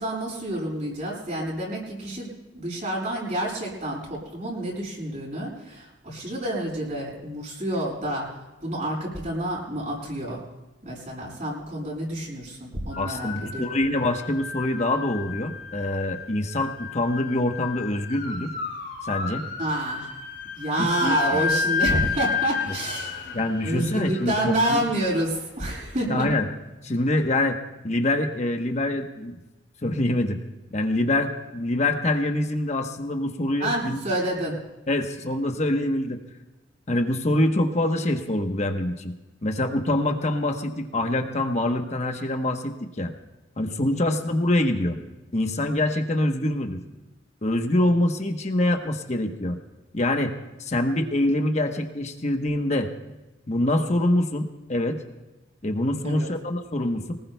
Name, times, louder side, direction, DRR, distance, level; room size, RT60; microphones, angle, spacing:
voice 1, 0.0-8.3 8.6-10.4 10.8-13.7 19.6-20.1 20.5-26.3 33.6-34.6 56.0-56.3, right 1 dB, 40° right, -3 dB, 7.0 m, -28 dB
sound 1, 12.9-26.0, left 5 dB, 65° left, 3.4 m, -32 dB
voice 2, 13.0-18.5 19.0-19.5 20.8-21.4 23.3-24.9 26.1-26.5 26.8-27.6 27.8-29.3 29.8-30.4 30.7-34.0 34.9-36.2 36.9-39.1 39.4-43.1 43.6-45.0 45.3-46.8 47.4-49.6 49.9-50.3 50.6-52.9 53.5-55.0 55.6-57.1, left 1 dB, 35° left, 5 dB, 1.0 m, -25 dB
24.5 x 19.0 x 2.3 m, 1.1 s
head